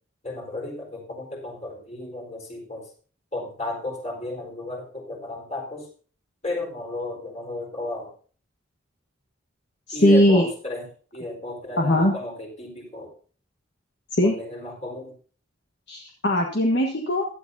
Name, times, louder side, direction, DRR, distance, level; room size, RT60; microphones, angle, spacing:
voice 1, 0.2-2.9 3.3-5.9 6.4-8.1 9.9-13.1 14.2-15.2, left 1 dB, 35° left, 0 dB, 4.4 m, -33 dB
voice 2, 9.9-10.4 11.8-12.1 14.2-14.3 15.9-17.3, left 1 dB, 55° left, 0 dB, 1.5 m, -19 dB
16.0 x 12.0 x 2.8 m, 0.42 s
head